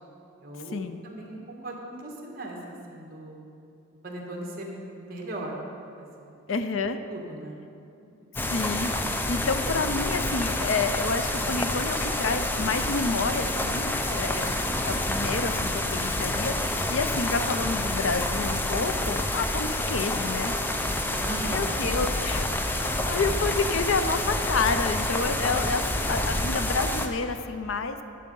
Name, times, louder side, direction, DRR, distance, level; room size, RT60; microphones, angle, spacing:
voice 1, 0.4-3.4 4.0-4.7 5.0-5.6 5.9-6.4 7.1-7.6 21.0-21.6 22.8-22.9, right 1 dB, 45° right, -1 dB, 1.5 m, -38 dB
voice 2, 6.5-7.0 8.5-8.9 9.3-14.5 14.8-20.5 21.5-28.0, left 4 dB, 65° left, 9 dB, 0.5 m, -29 dB
sound 1, 8.4-27.1, left 1 dB, 10° left, 0.4 m, -28 dB
10.5 x 6.5 x 5.4 m, 2.7 s
head